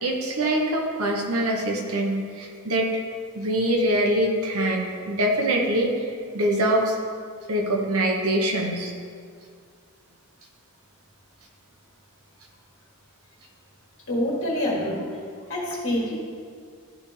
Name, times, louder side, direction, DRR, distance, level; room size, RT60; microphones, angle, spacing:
voice 1, 0.0-2.9 3.3-7.0 7.5-8.9, right 1 dB, 80° right, 1 dB, 1.1 m, -24 dB
voice 2, 14.1-15.1 15.5-16.2, left 1 dB, 55° left, -4 dB, 1.5 m, -26 dB
12.0 x 4.1 x 3.3 m, 2.1 s
head